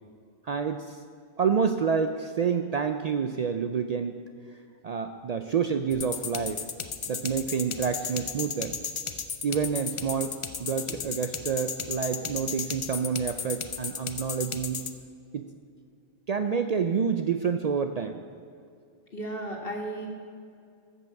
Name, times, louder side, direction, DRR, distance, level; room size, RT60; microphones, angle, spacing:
voice 1, 0.4-1.0 1.4-4.2 4.8-6.6 7.1-8.8 9.4-10.3 10.6-14.8 15.3-15.5 16.3-18.2, right 6 dB, 55° right, 7 dB, 0.4 m, -28 dB
sound 1, 5.9-14.9, left 6 dB, 40° left, 0.5 m, -34 dB
voice 2, 19.1-20.1, right 1 dB, 65° left, 0 dB, 1.9 m, -34 dB
13.5 x 5.5 x 7.0 m, 2.3 s
omnidirectional pair, 1.0 m